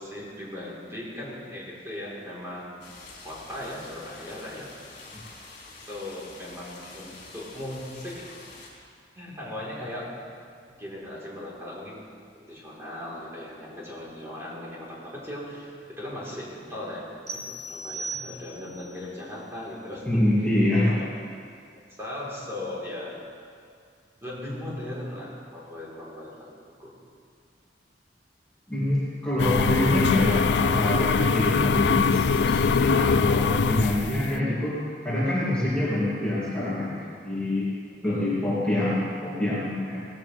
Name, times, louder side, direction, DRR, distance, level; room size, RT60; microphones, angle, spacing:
voice 1, 0.0-2.9 3.2-4.7 5.9-8.3 9.2-10.1 10.7-12.1 12.4-20.2 20.6-21.1 22.0-23.2 24.2-26.5 26.8-27.0 38.0-38.4, left 1 dB, 15° right, -6 dB, 4.0 m, -38 dB
sound 1, 2.8-8.7, left 3 dB, 55° left, 4.1 m, -47 dB
sound 2, 17.3-18.8, right 2 dB, 40° right, 1.6 m, -36 dB
voice 2, 20.0-21.0 28.7-37.7 38.0-40.0, left 1 dB, 5° left, -11 dB, 2.7 m, -26 dB
sound 3, 29.4-34.4, left 5 dB, 70° left, 0.4 m, -23 dB
18.0 x 16.0 x 3.4 m, 2.2 s
head